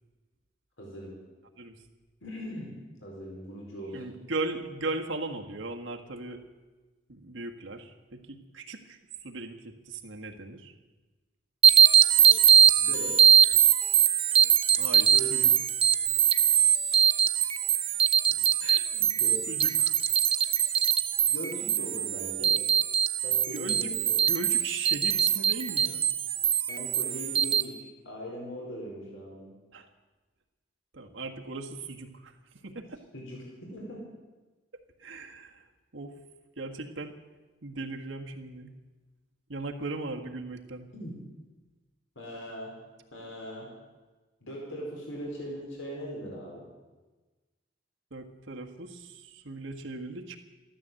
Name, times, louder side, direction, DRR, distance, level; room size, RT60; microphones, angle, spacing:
voice 1, 0.8-1.1 2.2-2.7 3.0-4.0 12.8-13.2 15.1-15.6 16.8-17.0 18.9-19.5 21.3-22.6 23.2-24.2 26.7-29.5 32.7-32.8 33.1-33.4 33.7-34.0 40.9-41.2 42.1-42.8 43.1-43.7 44.4-46.7, equal, 90° left, -2 dB, 4.5 m, -40 dB
voice 2, 3.9-6.4 7.1-10.7 14.8-15.5 18.6-18.9 19.5-19.9 23.5-23.9 24.3-26.1 29.7-29.9 30.9-32.3 32.6-33.0 35.0-35.6 35.9-36.1 36.6-37.1 37.6-38.7 39.5-40.9 48.1-50.4, right 3 dB, 85° right, 2 dB, 1.7 m, -38 dB
sound 1, 11.6-27.6, right 8 dB, 30° right, 0.8 m, -22 dB
14.0 x 13.0 x 7.7 m, 1.2 s
head